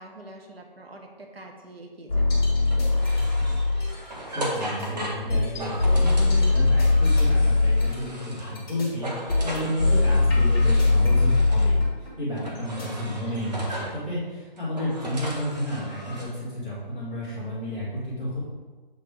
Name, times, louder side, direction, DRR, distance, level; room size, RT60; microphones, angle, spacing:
voice 1, 0.0-2.4, right 2 dB, 90° right, 2 dB, 1.2 m, -45 dB
sound 1, 2.1-4.1 4.5-12.8, left 3 dB, 20° left, 1.7 m, -21 dB
sound 2, 2.6-8.6 8.9-11.7 12.4-14.0 14.6-16.2, right 1 dB, 45° right, 1.2 m, -37 dB
voice 2, 3.1-3.8 4.2-9.1 9.4-11.8 12.2-18.4, left 1 dB, ahead, -15 dB, 1.0 m, -31 dB
7.4 x 4.0 x 3.3 m, 1.3 s
hypercardioid pair, 170°, 29 cm